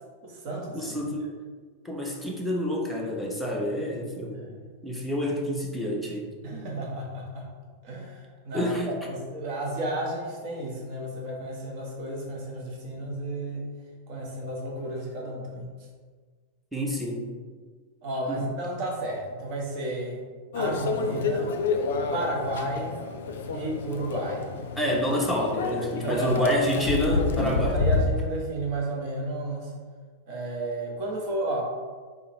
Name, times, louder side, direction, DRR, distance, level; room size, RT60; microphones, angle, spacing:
voice 1, 0.2-1.1 4.2-4.8 6.4-7.5 7.8-13.7 14.1-15.7 18.0-20.2 20.5-21.6 22.1-23.0 23.5-24.5 26.0-26.6 27.7-29.7 30.3-31.6, right 1 dB, 45° right, -1 dB, 1.1 m, -32 dB
voice 2, 0.7-1.3 1.8-4.4 4.8-6.3 8.5-8.9 16.7-17.2 18.3-18.4 24.8-27.8, equal, ahead, -2 dB, 0.8 m, -28 dB
Microwave oven, 20.5-28.0, left 4 dB, 60° left, 0.4 m, -29 dB
3.8 x 3.0 x 4.4 m, 1.5 s
figure-of-eight pair, 90°, 0 cm